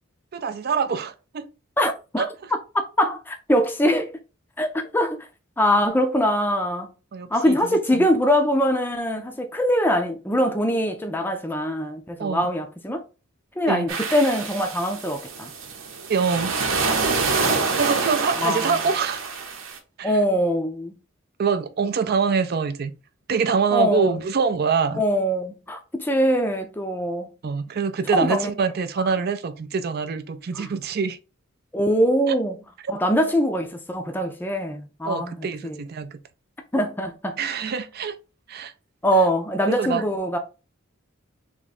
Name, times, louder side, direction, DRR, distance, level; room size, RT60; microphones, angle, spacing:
voice 1, 0.3-1.5 2.2-2.5 7.1-8.1 12.2-12.5 13.7-13.9 16.1-16.5 17.7-19.2 20.0-20.2 21.4-22.9 23.3-25.0 27.4-31.2 32.3-32.4 35.0-36.2 37.4-38.2 38.5-38.7 39.7-40.0, right 5 dB, 50° right, 0.4 m, -25 dB
voice 2, 1.8-2.2 3.0-4.1 4.6-5.2 5.6-6.9 7.3-13.0 13.6-15.5 18.4-18.7 20.0-20.9 23.7-24.2 24.9-27.3 28.1-28.5 30.5-30.7 31.7-32.6 32.9-35.8 36.7-37.4 39.0-40.4, equal, 10° left, 0.5 m, -23 dB
sound 1, 13.9-19.8, right 4 dB, 85° right, 0.9 m, -26 dB
3.5 x 3.0 x 4.1 m
head